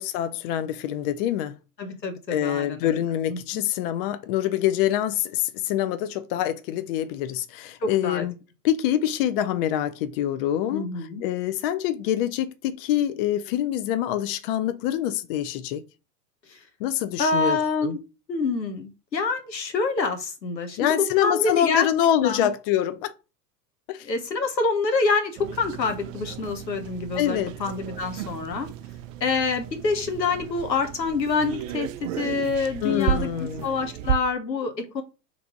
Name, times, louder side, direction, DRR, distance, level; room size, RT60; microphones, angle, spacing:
voice 1, 0.0-1.6 2.3-8.3 8.6-10.9 11.2-15.8 16.8-18.0 20.8-23.1 23.9-24.1 27.1-27.5 32.8-33.7, left 11 dB, 35° left, 0.4 m, -25 dB
voice 2, 1.8-3.0 3.3-3.6 7.8-8.2 10.7-11.2 16.5-16.6 17.2-18.0 18.3-21.9 22.2-22.5 24.0-28.7 29.2-35.0, left 4 dB, 85° left, 1.1 m, -27 dB
sound 1, 25.4-34.1, right 11 dB, 55° right, 0.5 m, -33 dB
3.3 x 3.1 x 3.8 m
hypercardioid pair, 95°, 49 cm